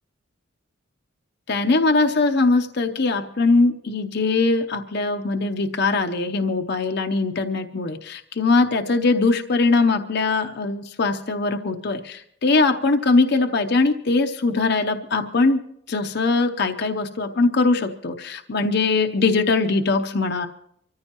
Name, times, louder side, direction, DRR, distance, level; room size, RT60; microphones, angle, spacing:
voice 1, 1.5-15.6 15.9-20.5, left 3 dB, 50° left, 5 dB, 0.7 m, -21 dB
25.0 x 14.5 x 2.9 m, 0.73 s
head